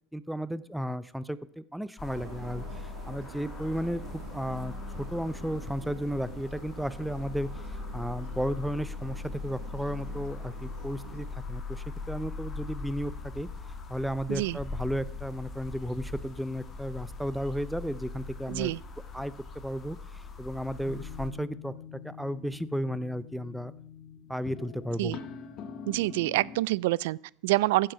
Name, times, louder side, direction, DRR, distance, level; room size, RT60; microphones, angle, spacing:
voice 1, 0.1-7.5 7.9-13.5 13.9-18.7 19.1-20.0 20.4-21.7 22.0-23.7 24.3-25.1, equal, ahead, 0.5 m, -34 dB
sound 1, 2.0-21.3, left 4 dB, 20° left, 1.7 m, -40 dB
sound 2, 2.1-11.3, right 9 dB, 70° right, 1.7 m, -48 dB
voice 2, 18.5-18.8 25.0-25.2 25.9-27.9, right 18 dB, 90° right, 0.4 m, -27 dB
sound 3, 20.8-26.6, left 7 dB, 35° left, 1.3 m, -44 dB
15.0 x 7.6 x 5.7 m
cardioid pair, 165°, 0 cm